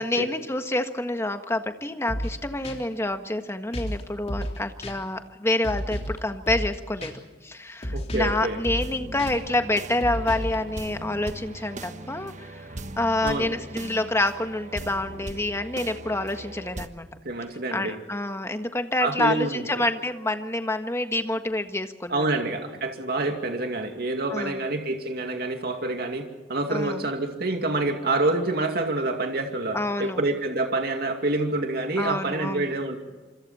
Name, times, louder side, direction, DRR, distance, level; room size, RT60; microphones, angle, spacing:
voice 1, 0.0-7.1 7.4-17.1 17.7-22.3 24.3-24.6 26.7-27.1 29.7-30.2 32.0-32.7, left 1 dB, 15° left, 7 dB, 1.5 m, -28 dB
sound 1, 2.1-2.4 2.6-2.8 3.7-4.0 4.3-4.6 4.8-4.9 5.6-6.2 6.5-6.7 7.0-7.1 7.8-8.4 8.6-8.9 9.2-9.3 10.0-10.6, equal, 40° left, 3.5 m, -31 dB
voice 2, 7.9-8.6 13.2-13.5 17.2-17.9 19.0-19.8 22.1-33.0, right 2 dB, 60° right, 4 dB, 2.5 m, -27 dB
sound 2, 8.8-16.9, right 2 dB, 45° right, 1.3 m, -39 dB
27.0 x 26.0 x 4.3 m, 1.3 s
head